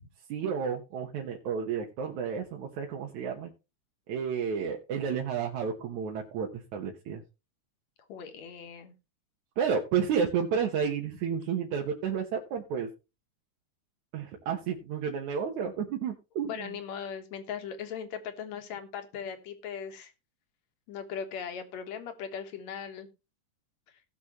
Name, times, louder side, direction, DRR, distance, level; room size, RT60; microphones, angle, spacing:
voice 1, 0.3-3.5 4.1-7.2 9.6-12.9 14.1-16.7, right 7 dB, 70° right, 0 dB, 2.6 m, -31 dB
voice 2, 8.1-8.9 16.4-20.1 20.9-23.1, left 7 dB, 65° left, 7 dB, 2.5 m, -39 dB
18.0 x 6.2 x 3.0 m, 0.27 s
omnidirectional pair, 3.6 m